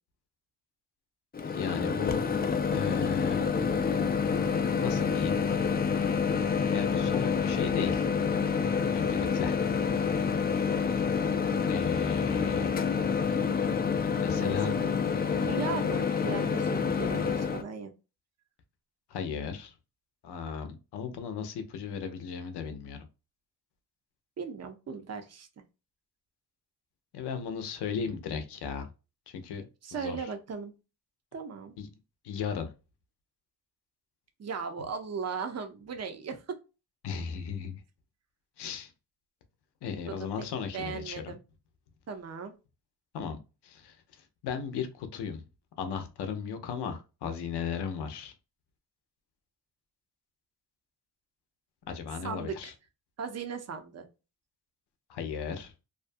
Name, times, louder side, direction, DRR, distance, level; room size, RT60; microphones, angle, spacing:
Microwave oven, 1.3-17.6, left 6 dB, 25° left, 0.4 m, -28 dB
voice 1, 1.5-2.3 2.7-3.5 4.8-5.4 6.7-8.0 8.9-9.6 11.7-12.7 14.1-14.8 19.1-19.7 20.2-23.0 27.1-28.9 29.3-30.3 31.8-31.9 32.2-32.7 37.0-37.8 38.6-38.9 39.8-41.4 43.1-43.4 43.6-44.0 44.4-45.4 45.8-48.3 51.9-52.7 55.1-55.7, left 6 dB, 85° left, 0.6 m, -36 dB
voice 2, 14.4-15.0 15.3-17.9 24.4-25.5 29.8-30.7 31.3-31.7 34.4-36.6 40.1-40.5 40.7-41.4 42.1-42.5 52.2-52.7 53.2-54.1, right 6 dB, 40° right, 0.6 m, -37 dB
2.5 x 2.3 x 2.5 m
cardioid pair, 75°, 39 cm